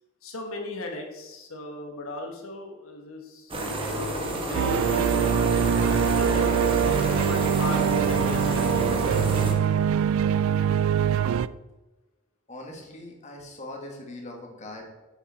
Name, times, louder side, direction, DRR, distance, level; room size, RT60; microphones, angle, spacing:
voice 1, 0.2-5.8 6.1-6.4 7.2-9.5, left 2 dB, 85° left, 3 dB, 1.3 m, -38 dB
sound 1, 3.5-9.5, right 1 dB, 25° right, 1.4 m, -30 dB
Emotional Uplifting Soundtrack - For Her, 4.5-11.5, right 8 dB, 80° right, 0.3 m, -23 dB
voice 2, 12.5-14.9, left 1 dB, 35° left, 1 dB, 1.7 m, -41 dB
9.1 x 7.1 x 4.1 m, 1.1 s
head